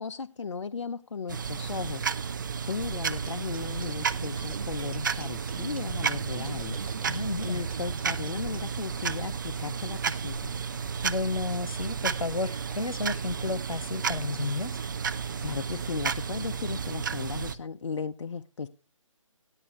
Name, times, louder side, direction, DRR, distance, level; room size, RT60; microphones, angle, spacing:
voice 1, 0.0-2.4 2.7-6.8 7.4-10.5 15.4-18.7, left 5 dB, 60° left, 11 dB, 0.5 m, -36 dB
sound 1, 1.3-17.6, right 6 dB, 35° right, 0.5 m, -32 dB
sound 2, 3.0-8.6, right 4 dB, 85° right, 0.6 m, -41 dB
voice 2, 7.0-7.6 11.0-14.7, left 2 dB, 90° left, 12 dB, 1.1 m, -32 dB
13.5 x 10.5 x 3.1 m, 0.30 s
figure-of-eight pair, 150°, 17 cm